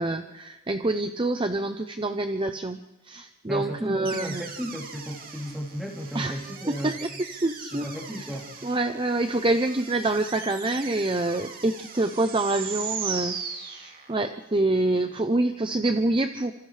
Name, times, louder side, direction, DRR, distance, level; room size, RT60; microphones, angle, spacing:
voice 1, 0.0-2.8 3.0-4.4 6.1-6.4 6.7-7.9 8.2-8.4 8.6-13.4 13.6-16.5, right 2 dB, 25° right, 8 dB, 0.6 m, -26 dB
voice 2, 3.5-7.0 7.7-8.5, equal, ahead, -1 dB, 3.2 m, -34 dB
sound 1, 4.0-14.3, right 6 dB, 40° right, 2.3 m, -39 dB
29.0 x 27.0 x 3.3 m, 1.0 s
head